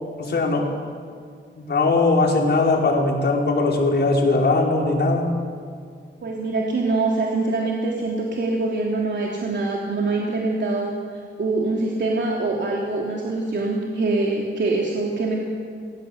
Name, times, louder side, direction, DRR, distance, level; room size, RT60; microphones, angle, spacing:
voice 1, 0.2-0.7 1.5-5.3, left 3 dB, 55° left, -1 dB, 5.4 m, -20 dB
voice 2, 6.2-11.0 11.4-15.4, right 3 dB, 65° right, -2 dB, 3.3 m, -24 dB
27.5 x 21.5 x 8.3 m, 2.2 s
wide cardioid pair, 135°, 20 cm